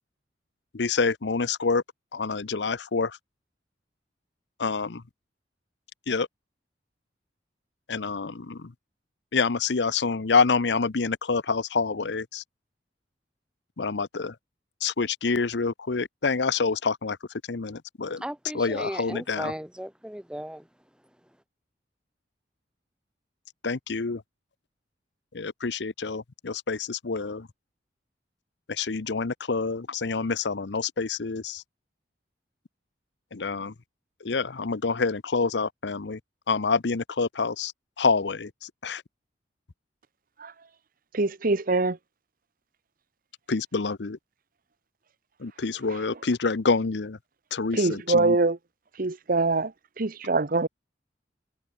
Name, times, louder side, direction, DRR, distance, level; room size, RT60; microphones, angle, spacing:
voice 1, 0.7-1.8 2.1-3.2 4.6-5.0 6.1-6.3 7.9-8.7 9.3-12.4 13.8-14.3 14.8-17.2 17.5-18.2 18.5-19.5 23.6-24.2 25.3-27.5 28.7-31.6 33.3-33.7 34.2-36.2 36.5-37.7 38.0-39.0 43.5-44.2 45.4-47.2 47.5-48.4, left 4 dB, 70° left, 0.8 m, -27 dB
voice 2, 18.2-20.7, equal, 5° right, 2.1 m, -36 dB
voice 3, 41.1-42.0 47.7-48.6 49.0-50.7, right 3 dB, 50° right, 1.0 m, -24 dB
head